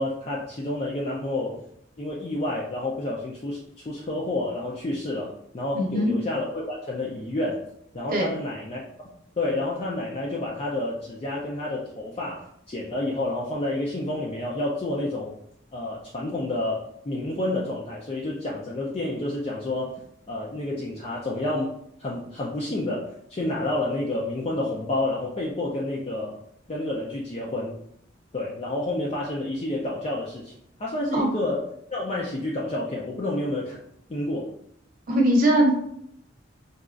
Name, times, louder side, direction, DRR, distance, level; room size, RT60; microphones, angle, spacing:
voice 1, 0.0-1.6 2.0-7.7 7.9-9.1 9.4-15.4 15.7-26.4 26.7-27.7 28.3-30.5 30.8-31.6 31.9-33.8 34.1-34.5, left 2 dB, 30° left, -4 dB, 0.4 m, -29 dB
voice 2, 5.7-6.1 8.1-8.3 31.1-31.3 35.1-35.7, right 1 dB, 45° right, -1 dB, 0.8 m, -20 dB
4.0 x 2.3 x 2.4 m, 0.71 s
head